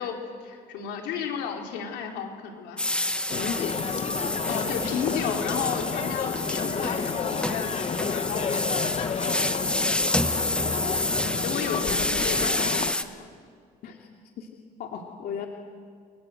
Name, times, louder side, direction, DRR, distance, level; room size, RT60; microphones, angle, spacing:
voice 1, 0.0-2.8 4.5-9.3 11.3-13.1, left 7 dB, 90° left, 2 dB, 4.2 m, -33 dB
sound 1, 2.8-13.0, left 1 dB, 5° left, 1.3 m, -29 dB
voice 2, 3.3-3.8 10.4-11.0 11.7-11.8 13.8-14.1 14.4-14.5 14.8-15.5, left 7 dB, 65° left, 1 dB, 2.7 m, -36 dB
sound 2, 3.3-12.9, left 6 dB, 40° left, 1.2 m, -31 dB
29.5 x 23.5 x 8.0 m, 2.1 s
cardioid pair, 110°, 17 cm